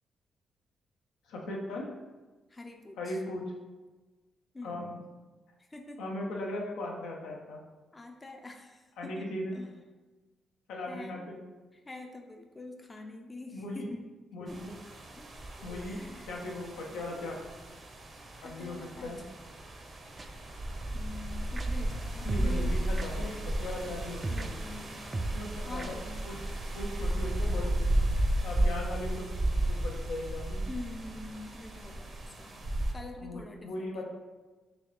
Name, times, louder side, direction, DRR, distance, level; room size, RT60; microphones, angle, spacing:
voice 1, 1.3-1.9 3.0-3.5 4.6-5.0 6.0-7.6 9.0-9.5 10.7-11.4 13.5-13.9 14.3-14.7 15.6-16.0 16.3-17.4 18.4-19.2 22.2-24.5 25.3-25.8 26.2-26.4 26.7-27.9 28.4-29.3 29.7-30.6 33.2-34.0, left 1 dB, 85° left, -1 dB, 0.6 m, -38 dB
voice 2, 2.5-3.2 4.5-4.9 5.6-6.0 7.9-9.7 10.8-11.3 11.7-14.1 14.4-14.6 15.1-15.3 15.6-16.3 18.4-19.1 20.9-22.8 24.3-25.1 25.7-26.3 30.7-32.6 32.9-34.0, left 2 dB, 25° left, 4 dB, 0.5 m, -45 dB
sound 1, 14.5-32.9, right 1 dB, 50° right, 0.8 m, -34 dB
sound 2, 20.2-20.3 21.6-21.7 22.3-22.5 23.0-23.1 24.2-24.5 25.1-25.4 25.8-25.9, right 2 dB, 30° right, 0.4 m, -34 dB
4.0 x 2.8 x 3.2 m, 1.3 s
supercardioid pair, 60°, 0 cm